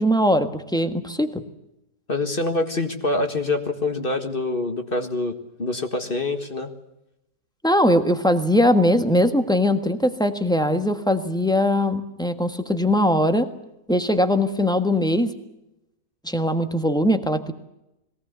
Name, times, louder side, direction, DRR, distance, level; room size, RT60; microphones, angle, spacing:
voice 1, 0.0-1.4 7.6-13.5 13.9-15.3 16.2-17.5, left 1 dB, 5° left, 7 dB, 1.4 m, -20 dB
voice 2, 2.1-6.7, left 2 dB, 35° left, 6 dB, 1.8 m, -25 dB
22.0 x 18.0 x 8.1 m, 0.88 s
omnidirectional pair, 1.7 m